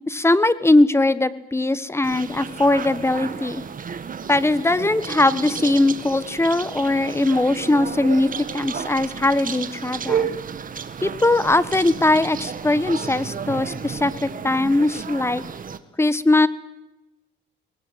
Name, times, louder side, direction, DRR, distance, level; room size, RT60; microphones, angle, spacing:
voice 1, 0.1-3.6 4.3-10.3 11.0-15.4 16.0-16.5, left 2 dB, 15° left, 16 dB, 1.4 m, -20 dB
sound 1, 2.0-15.8, right 7 dB, 45° right, 1.8 m, -32 dB
24.0 x 20.0 x 8.1 m, 0.97 s
cardioid pair, 90°, 20 cm